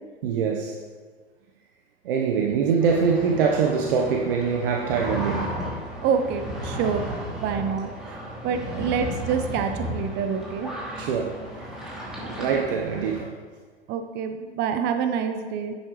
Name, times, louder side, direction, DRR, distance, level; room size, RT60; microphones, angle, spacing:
voice 1, 0.2-0.8 2.0-5.6 11.0-11.7 12.2-13.3, right 6 dB, 55° right, 1 dB, 1.1 m, -24 dB
sound 1, 2.8-13.2, equal, ahead, 2.7 m, -34 dB
voice 2, 6.0-7.1 7.4-8.2 8.4-10.7 12.2-12.4 13.9-15.8, right 6 dB, 35° right, 6 dB, 0.8 m, -27 dB
11.0 x 8.1 x 3.2 m, 1.5 s
figure-of-eight pair, 100°, 32 cm